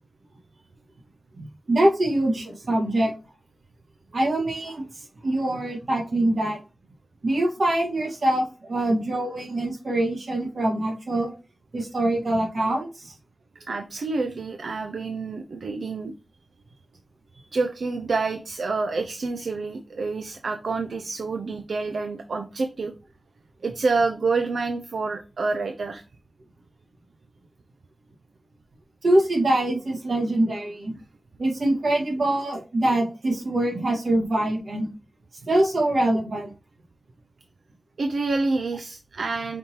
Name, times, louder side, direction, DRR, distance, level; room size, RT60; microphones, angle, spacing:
voice 1, 1.4-3.1 4.1-6.6 7.2-11.3 11.7-13.1 29.0-30.9 31.4-34.9 35.5-36.5, right 1 dB, 60° right, -1 dB, 1.4 m, -24 dB
voice 2, 13.6-16.1 17.3-22.9 23.6-26.0 31.0-31.1 38.0-39.6, right 3 dB, 80° right, 6 dB, 0.4 m, -28 dB
5.1 x 2.7 x 2.9 m, 0.33 s
wide cardioid pair, 90°, 0 cm